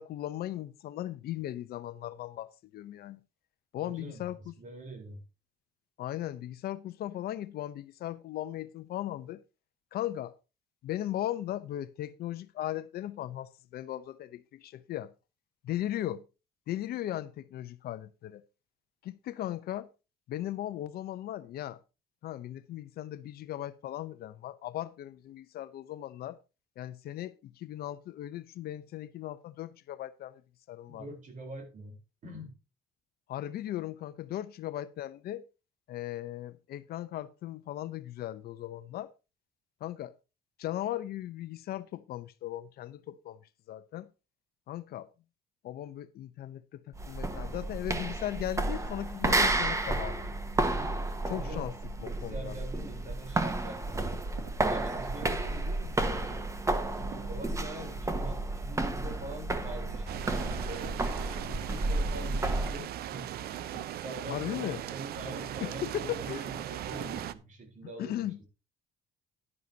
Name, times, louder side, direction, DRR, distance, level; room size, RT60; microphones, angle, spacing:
voice 1, 0.0-3.2 3.7-4.5 6.0-9.4 9.9-10.3 10.8-15.1 15.6-16.2 16.7-18.4 19.0-19.9 20.3-21.8 22.2-26.4 26.8-30.4 30.7-31.1 33.3-35.4 35.9-39.1 39.8-40.1 40.6-43.4 43.7-44.1 44.7-45.1 45.6-50.3 51.2-51.7 52.0-52.5 64.3-64.8 65.6-66.4 68.0-68.4, left 13 dB, 65° left, 0.8 m, -37 dB
voice 2, 3.8-4.3 4.6-5.2 30.9-32.5 51.3-51.7 52.0-54.2 54.7-56.2 57.3-61.0 61.6-63.5 63.9-68.2, right 2 dB, 50° right, 4.1 m, -44 dB
sound 1, 46.9-62.8, right 2 dB, 20° right, 1.4 m, -32 dB
sound 2, 53.7-55.4 55.8-56.5 56.8-58.4 59.0-61.0 61.4-61.8 62.1-62.7 63.3-63.4 63.6-64.5 65.1-65.9 66.6-67.2, right 5 dB, 85° right, 2.4 m, -47 dB
sound 3, 60.1-67.3, right 12 dB, 65° right, 0.7 m, -39 dB
11.0 x 11.0 x 2.8 m
cardioid pair, 110°, 17 cm